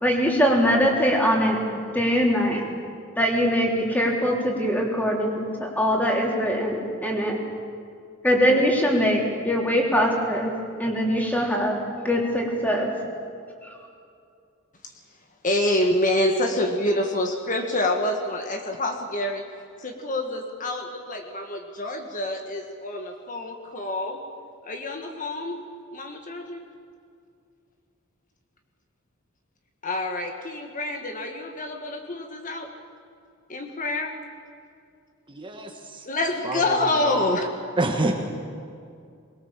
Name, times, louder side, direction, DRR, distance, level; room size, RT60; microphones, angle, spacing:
voice 1, 0.0-1.6 1.9-2.6 3.2-7.4 8.2-10.5 10.8-12.9 13.6-13.7, equal, 10° left, -1 dB, 3.7 m, -22 dB
voice 2, 15.4-19.4 19.8-24.2 24.6-25.6 25.9-26.6 29.8-32.7 33.5-34.1 36.1-37.5, left 1 dB, 40° left, 3 dB, 1.6 m, -27 dB
voice 3, 35.3-36.0 36.4-37.2 37.8-38.2, right 2 dB, 25° right, 2 dB, 1.4 m, -28 dB
23.0 x 21.5 x 7.4 m, 2.4 s
head